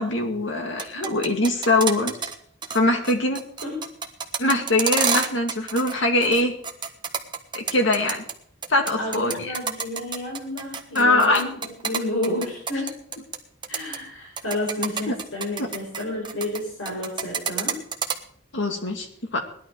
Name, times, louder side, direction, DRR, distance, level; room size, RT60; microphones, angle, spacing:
voice 1, 0.0-2.2 2.7-3.4 4.4-6.5 7.5-8.2 8.7-9.6 10.9-11.4 15.1-15.2 15.6-15.7 18.5-19.4, left 2 dB, 65° left, 4 dB, 2.4 m, -22 dB
sound 1, 0.6-2.3 2.6-2.8 3.0-5.9 6.2-8.3 8.6-13.4 13.6-14.0 14.4-16.6 16.9-18.2, right 6 dB, 25° right, 1.2 m, -28 dB
voice 2, 9.0-11.5 11.8-12.9 13.7-17.8, left 1 dB, 85° left, -3 dB, 5.3 m, -30 dB
18.0 x 11.5 x 4.8 m, 0.63 s
head